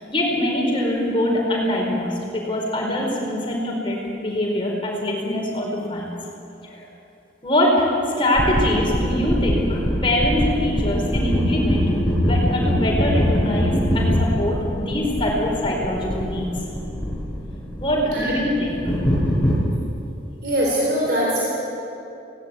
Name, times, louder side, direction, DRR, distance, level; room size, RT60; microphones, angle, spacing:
voice 1, 0.0-6.1 6.6-6.9 7.4-7.9 8.2-11.9 12.3-16.5 17.8-18.9, left 1 dB, 25° left, -2 dB, 4.7 m, -23 dB
sound 1, 8.4-19.5, equal, 10° left, 6.1 m, -23 dB
voice 2, 20.4-21.4, equal, 55° right, -4 dB, 4.1 m, -22 dB
17.5 x 17.0 x 9.7 m, 2.8 s
head